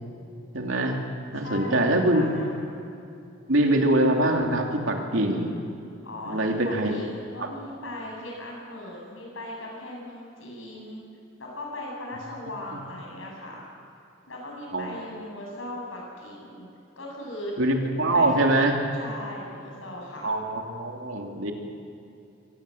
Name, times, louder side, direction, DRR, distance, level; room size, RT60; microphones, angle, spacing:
voice 1, 0.5-1.0 1.3-2.3 3.5-5.6 6.3-7.0 7.4-7.5 14.7-15.1 17.6-18.8 20.2-21.5, right 1 dB, 75° right, 2 dB, 3.0 m, -23 dB
voice 2, 1.3-2.5 6.0-11.0 11.4-13.6 14.3-16.7 17.0-17.5 18.1-18.6 19.0-20.3, left 1 dB, 80° left, -1 dB, 7.9 m, -38 dB
23.5 x 18.5 x 7.9 m, 2.6 s
head